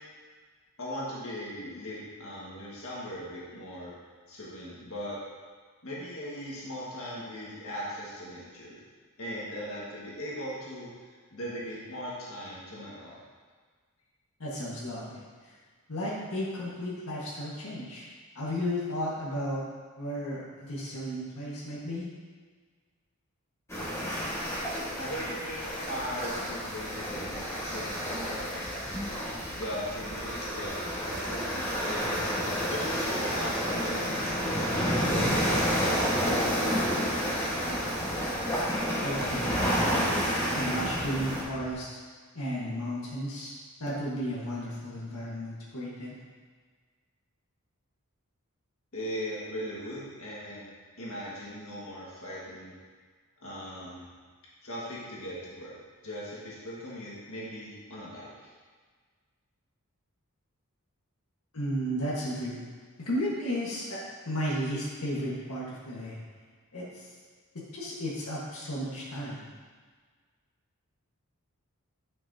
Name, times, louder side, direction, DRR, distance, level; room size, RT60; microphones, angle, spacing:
voice 1, 0.8-4.0 4.3-5.2 5.8-8.8 9.2-13.2 25.0-28.9 29.5-36.4 48.9-50.7 51.0-52.7 53.4-54.1 54.6-55.8 56.0-58.5, equal, 70° left, -6 dB, 1.8 m, -39 dB
voice 2, 14.4-15.5 15.9-18.1 18.3-19.6 20.0-22.0 39.0-40.0 40.5-42.0 42.3-43.5 43.8-46.2 61.5-62.6 63.0-64.0 64.2-66.2 66.7-67.1 67.5-69.4, equal, 90° left, -7 dB, 1.6 m, -34 dB
sound 1, 23.7-41.4, equal, 15° left, 1.6 m, -30 dB
sound 2, 28.0-34.1 34.9-41.7, equal, 40° left, 1.2 m, -51 dB
9.4 x 6.1 x 2.8 m, 1.5 s
head